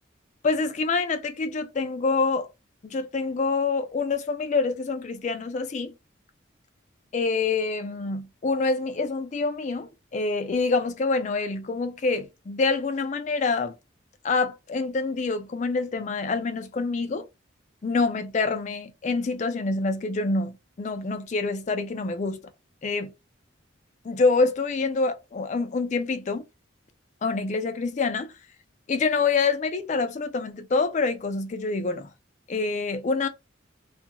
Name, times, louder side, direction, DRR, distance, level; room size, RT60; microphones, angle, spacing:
voice 1, 0.4-2.5 2.8-5.9 7.1-13.7 14.2-17.3 17.8-22.5 22.8-23.1 24.0-26.4 27.2-28.3 28.9-32.1 32.5-33.3, left 4 dB, 35° left, 0.3 m, -26 dB
2.4 x 2.2 x 2.8 m
head